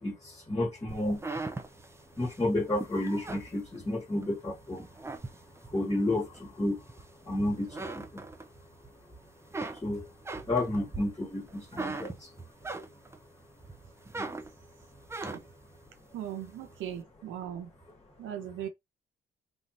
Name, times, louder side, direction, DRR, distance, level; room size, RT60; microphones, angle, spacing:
voice 1, 0.0-1.2 2.2-4.9 5.7-6.8 7.2-8.2 9.7-10.1 10.5-12.3 14.1-14.3, left 1 dB, 20° left, 1.2 m, -31 dB
sound 1, 0.9-4.3 4.7-5.8 6.3-7.3 7.6-8.9 9.2-13.3 13.7-15.7, right 3 dB, 15° right, 0.5 m, -40 dB
voice 2, 16.1-17.7 18.2-18.7, right 10 dB, 85° right, 0.9 m, -38 dB
3.6 x 2.4 x 2.7 m
cardioid pair, 90°, 20 cm